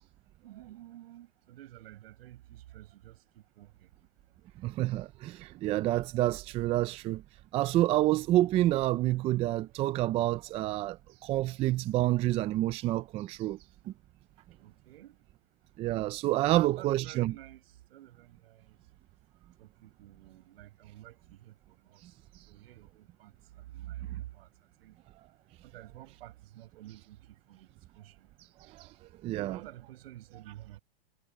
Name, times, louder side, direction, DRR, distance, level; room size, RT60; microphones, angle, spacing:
voice 1, 0.4-3.9 14.6-15.2 16.5-17.6 17.9-18.8 19.6-22.0 22.5-23.3 23.6-24.5 24.8-24.9 25.6-27.7 27.9-28.3 29.4-30.8, right 14 dB, 65° right, 6.0 m, -49 dB
voice 2, 4.6-7.2 7.5-11.0 11.2-13.6 15.8-17.3 28.7-28.9 29.2-29.6, right 15 dB, 20° right, 0.4 m, -28 dB
hypercardioid pair, 140°, 32 cm